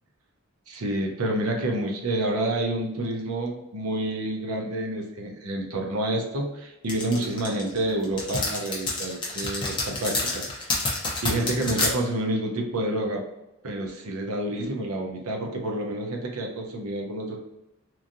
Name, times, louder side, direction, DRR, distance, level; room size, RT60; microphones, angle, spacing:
voice 1, 0.7-11.0 11.2-13.2 13.6-17.4, right 1 dB, 80° right, 1 dB, 0.6 m, -29 dB
sound 1, 6.9-11.9, left 3 dB, 20° left, 0.6 m, -28 dB
3.0 x 2.6 x 2.5 m, 0.96 s
head